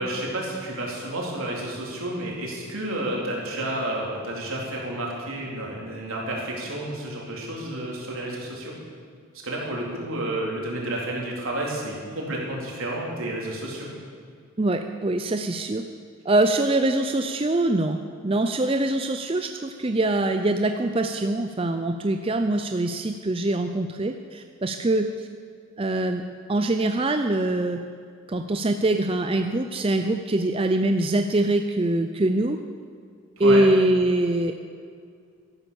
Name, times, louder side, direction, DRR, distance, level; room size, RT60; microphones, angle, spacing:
voice 1, 0.0-8.7 9.4-13.9 33.4-33.6, right 1 dB, 75° right, -3 dB, 3.8 m, -30 dB
voice 2, 14.6-15.9 16.2-25.3 25.8-26.2 26.5-27.8 28.3-32.6 33.4-34.5, right 2 dB, 25° right, 6 dB, 0.5 m, -23 dB
13.5 x 11.5 x 7.0 m, 2.2 s
head